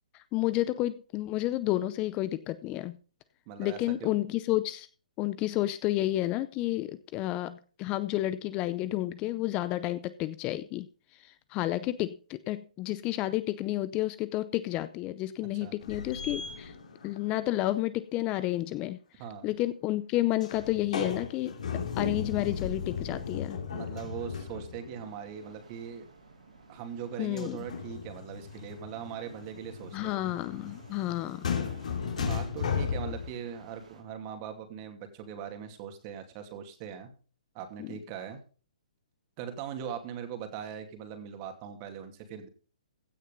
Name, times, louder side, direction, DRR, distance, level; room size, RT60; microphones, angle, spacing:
voice 1, 0.1-3.0 3.6-4.9 5.2-10.9 11.2-16.7 17.0-19.0 19.4-21.5 22.0-23.6 27.2-27.6 29.9-31.5 37.8-37.9, left 16 dB, 25° left, 15 dB, 0.6 m, -31 dB
voice 2, 3.5-4.1 15.5-15.7 19.2-19.5 23.7-26.1 26.7-30.2 32.2-37.1 37.5-38.4 39.4-42.5, right 8 dB, 35° right, 6 dB, 2.5 m, -40 dB
sound 1, 15.8-17.3 20.4-25.0 27.4-33.3, left 6 dB, 70° left, 3.2 m, -36 dB
sound 2, 23.9-34.0, right 4 dB, 80° right, 4.8 m, -55 dB
16.0 x 6.4 x 5.3 m, 0.39 s
hypercardioid pair, 140°, 4 cm